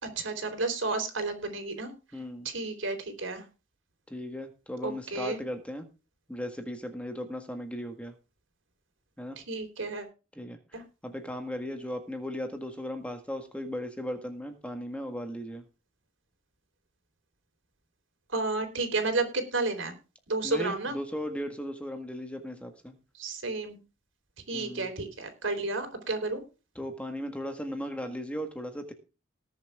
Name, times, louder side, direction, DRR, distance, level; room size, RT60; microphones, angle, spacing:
voice 1, 0.0-1.9 2.4-3.4 4.8-5.4 9.4-10.1 10.7-10.8 18.3-19.9 20.3-21.0 23.2-23.8 24.5-26.4, right 3 dB, 75° right, 7 dB, 4.0 m, -31 dB
voice 2, 2.1-2.5 4.1-5.9 6.3-8.1 9.2-9.4 10.3-10.6 11.0-15.6 20.4-22.9 24.5-24.9 26.7-28.9, equal, 5° left, 6 dB, 1.7 m, -37 dB
19.5 x 7.3 x 3.6 m, 0.32 s
head